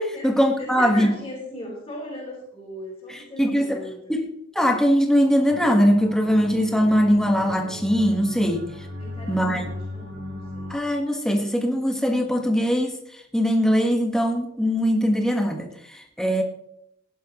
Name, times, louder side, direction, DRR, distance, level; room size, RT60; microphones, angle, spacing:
voice 1, 0.0-1.1 3.4-3.8 4.1-4.2 4.5-8.7 9.3-9.6 10.7-13.0 13.3-16.4, equal, 5° left, 3 dB, 1.3 m, -21 dB
voice 2, 0.6-4.2 9.0-10.7, left 1 dB, 20° left, -8 dB, 4.5 m, -38 dB
sound 1, 5.5-10.8, left 1 dB, 55° right, 3.3 m, -35 dB
16.0 x 11.0 x 3.0 m, 0.76 s
head